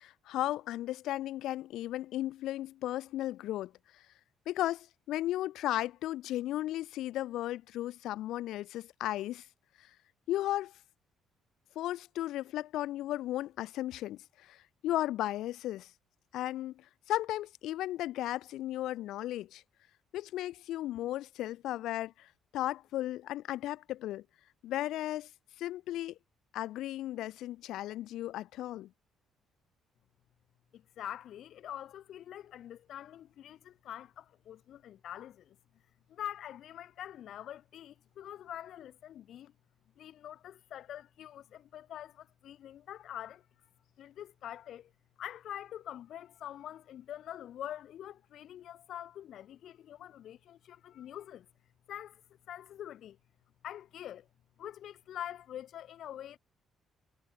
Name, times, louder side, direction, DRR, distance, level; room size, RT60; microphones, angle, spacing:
voice 1, 0.0-3.7 4.5-9.5 10.3-10.7 11.8-15.9 16.3-19.6 20.1-24.2 24.6-25.3 25.6-26.2 26.5-28.9, left 14 dB, 80° left, 3.3 m, -35 dB
voice 2, 30.7-35.6 36.1-39.5 40.0-43.5 44.0-44.9 45.2-51.5 51.9-52.2 52.5-53.2 53.6-54.3 54.6-56.4, left 11 dB, 65° left, 3.1 m, -45 dB
cardioid pair, 130°, 0 cm